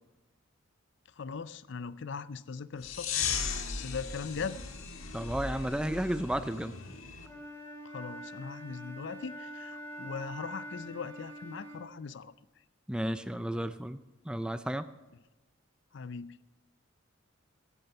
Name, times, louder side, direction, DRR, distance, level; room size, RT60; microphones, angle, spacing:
voice 1, 1.2-3.1 3.7-4.6 7.8-12.3 15.9-16.4, left 5 dB, 55° left, 17 dB, 0.5 m, -40 dB
sound 1, 2.8-7.3, left 6 dB, 75° left, 1.5 m, -37 dB
voice 2, 5.1-6.7 12.9-14.0 14.3-14.9, right 1 dB, 5° right, 12 dB, 0.3 m, -32 dB
Wind instrument woodwind instrument, 7.2-11.9, equal, 10° left, 2.9 m, -45 dB
14.5 x 11.0 x 5.4 m, 1.1 s
head